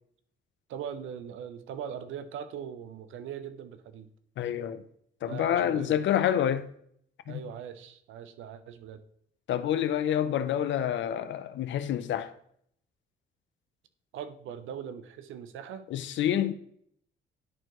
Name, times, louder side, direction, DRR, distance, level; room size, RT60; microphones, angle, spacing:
voice 1, 0.7-4.1 5.2-6.0 7.3-9.0 14.1-15.9, right 8 dB, 80° right, 0.6 m, -40 dB
voice 2, 4.4-4.8 5.2-6.7 7.3-7.4 9.5-12.3 15.9-16.5, left 10 dB, 70° left, 0.6 m, -28 dB
10.5 x 4.5 x 3.0 m
cardioid pair, 90°, 20 cm